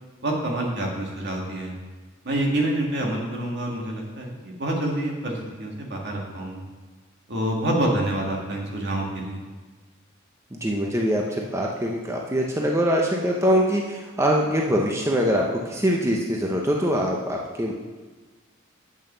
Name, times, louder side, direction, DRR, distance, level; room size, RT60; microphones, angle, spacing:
voice 1, 0.2-1.7 2.2-6.6 7.3-9.4, right 1 dB, 55° right, 0 dB, 2.0 m, -27 dB
voice 2, 10.5-17.7, equal, 15° right, -1 dB, 0.7 m, -23 dB
8.7 x 6.4 x 6.7 m, 1.3 s
head